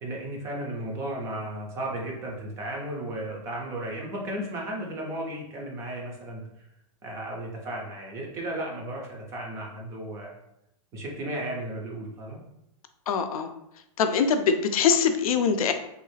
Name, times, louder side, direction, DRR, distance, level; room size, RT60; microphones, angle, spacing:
voice 1, 0.0-6.4 7.0-10.3 10.9-12.4, right 1 dB, 15° right, -1 dB, 0.4 m, -34 dB
voice 2, 13.1-13.5 14.0-15.7, left 6 dB, 75° left, 7 dB, 0.4 m, -23 dB
3.1 x 2.3 x 3.1 m, 0.82 s
supercardioid pair, 165°, 18 cm